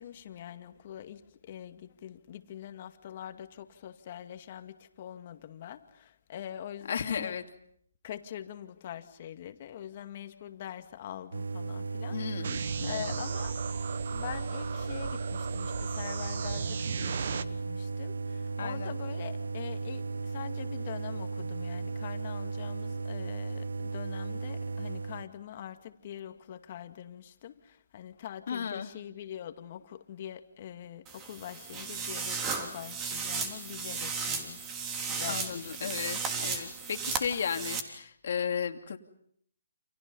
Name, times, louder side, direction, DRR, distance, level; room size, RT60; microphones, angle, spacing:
voice 1, 0.0-7.4 8.0-13.6 14.1-36.0, left 10 dB, 40° left, 2.2 m, -44 dB
voice 2, 6.9-7.4 12.1-13.1 18.6-18.9 28.5-28.9 35.3-39.0, left 7 dB, 60° left, 2.8 m, -34 dB
sound 1, 11.3-25.3, right 4 dB, 85° right, 1.0 m, -36 dB
sound 2, 12.4-17.4, right 6 dB, 60° right, 1.4 m, -37 dB
sound 3, 31.1-37.8, right 5 dB, 20° right, 3.3 m, -35 dB
29.5 x 28.5 x 5.6 m
hypercardioid pair, 150°, 0 cm